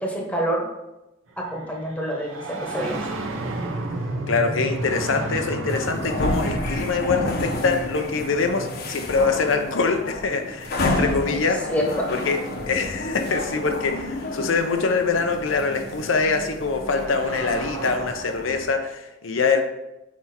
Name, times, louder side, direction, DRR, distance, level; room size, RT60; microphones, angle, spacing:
voice 1, 0.0-0.6 1.4-3.0 11.7-11.8, right 1 dB, 5° left, -1 dB, 1.1 m, -27 dB
sound 1, 1.4-12.0 13.2-13.3 14.4-18.1, right 2 dB, 85° right, 0.8 m, -34 dB
voice 2, 4.3-11.6 12.1-19.6, left 4 dB, 85° left, 5 dB, 0.6 m, -24 dB
sound 2, 5.7-18.7, left 2 dB, 55° left, 0.9 m, -30 dB
6.0 x 4.3 x 4.3 m, 0.96 s
head